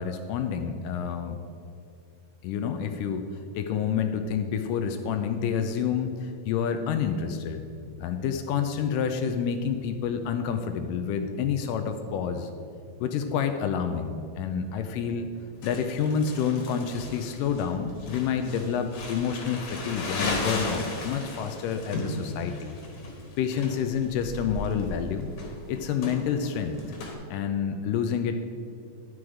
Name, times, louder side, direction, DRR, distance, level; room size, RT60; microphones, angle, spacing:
voice 1, 0.0-1.4 2.4-3.2 3.6-7.6 8.0-12.5 13.0-15.3 15.6-22.7 23.4-25.3 25.7-26.8 27.3-28.4, left 7 dB, 80° left, 7 dB, 2.1 m, -28 dB
Crumpling crinkling, 15.6-27.1, left 2 dB, 60° left, 2.7 m, -36 dB
11.0 x 6.2 x 4.8 m, 2.7 s
omnidirectional pair, 4.0 m